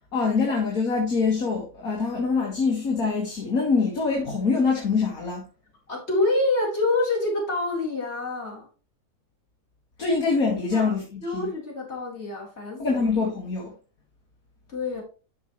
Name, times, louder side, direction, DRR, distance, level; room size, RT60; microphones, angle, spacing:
voice 1, 0.1-5.4 10.0-11.5 12.8-13.7, left 4 dB, 60° left, 2.3 m, -24 dB
voice 2, 5.9-8.7 10.7-10.9 11.2-12.8 14.7-15.0, left 2 dB, 40° left, 4.4 m, -26 dB
12.5 x 5.7 x 3.2 m
omnidirectional pair, 1.7 m